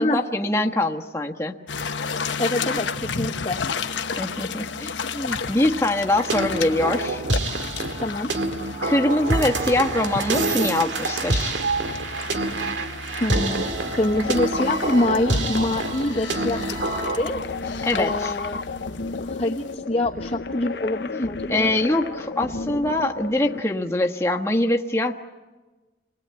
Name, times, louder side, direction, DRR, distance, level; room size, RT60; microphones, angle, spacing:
voice 1, 0.0-1.6 4.2-7.2 8.8-11.6 17.9-18.3 21.5-25.2, left 1 dB, 15° left, 2 dB, 1.3 m, -23 dB
sound 1, 1.7-19.7, left 5 dB, 90° left, 1.1 m, -33 dB
voice 2, 2.4-3.6 8.0-8.3 13.2-17.4 17.9-18.6 19.2-21.7, left 1 dB, 30° left, -3 dB, 1.1 m, -25 dB
sound 2, 6.1-17.2, right 2 dB, 90° right, 1.9 m, -27 dB
sound 3, 14.1-23.6, left 3 dB, 65° left, 0.8 m, -32 dB
29.0 x 20.5 x 8.8 m, 1.2 s
head